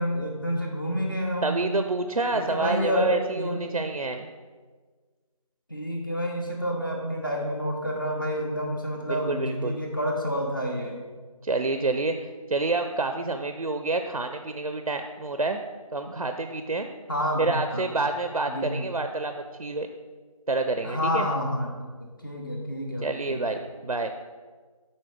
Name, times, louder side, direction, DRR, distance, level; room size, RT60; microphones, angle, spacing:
voice 1, 0.0-1.6 2.3-3.1 3.3-3.7 5.7-11.0 17.1-17.9 18.5-18.9 20.8-21.7 22.2-23.4, equal, 35° left, -1 dB, 0.9 m, -29 dB
voice 2, 1.4-4.3 9.1-9.8 11.4-15.6 15.9-16.9 17.4-19.9 20.5-21.3 23.0-24.1, right 3 dB, 80° right, 7 dB, 0.5 m, -28 dB
6.1 x 4.2 x 4.9 m, 1.5 s
figure-of-eight pair, 170°, 19 cm